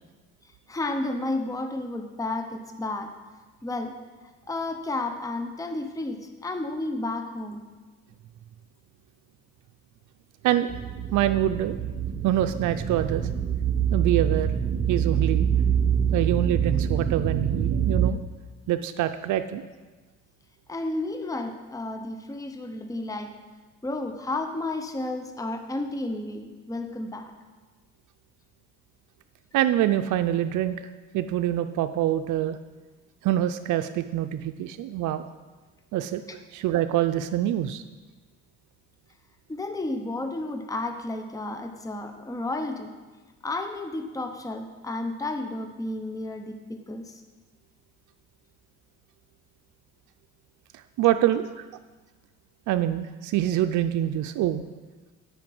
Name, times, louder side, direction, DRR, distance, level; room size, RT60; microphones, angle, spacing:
voice 1, 0.7-3.1 3.6-4.0 4.5-7.7 20.7-23.4 23.8-27.3 39.5-43.0 43.4-47.2, left 2 dB, 10° left, 6 dB, 0.8 m, -32 dB
sound 1, 10.7-18.1, right 8 dB, 30° right, 0.6 m, -25 dB
voice 2, 11.1-11.8 12.2-13.3 13.9-14.5 14.9-15.5 16.1-18.2 18.7-19.6 29.5-30.8 31.1-32.6 33.2-35.3 35.9-37.8 50.7-51.6 52.7-54.6, right 12 dB, 75° right, 8 dB, 0.5 m, -25 dB
10.0 x 5.2 x 7.6 m, 1.3 s
cardioid pair, 90°, 30 cm